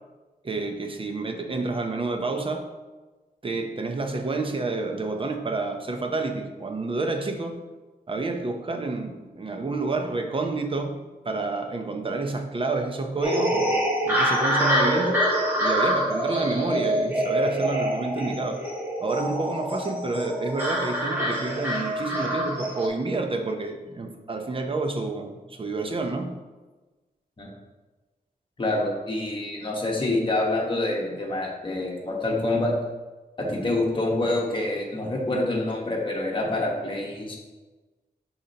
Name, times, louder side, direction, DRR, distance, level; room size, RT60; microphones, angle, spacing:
voice 1, 0.4-2.7 3.4-7.6 8.1-11.0 11.2-13.8 14.0-15.2 15.6-18.6 19.0-26.4, right 3 dB, 35° right, 4 dB, 0.6 m, -29 dB
sound 1, 13.2-22.9, equal, 15° right, 1.8 m, -25 dB
voice 2, 28.6-32.7 33.4-37.4, left 2 dB, 30° left, -2 dB, 1.2 m, -26 dB
8.5 x 4.3 x 2.8 m, 1.2 s
wide cardioid pair, 160°, 16 cm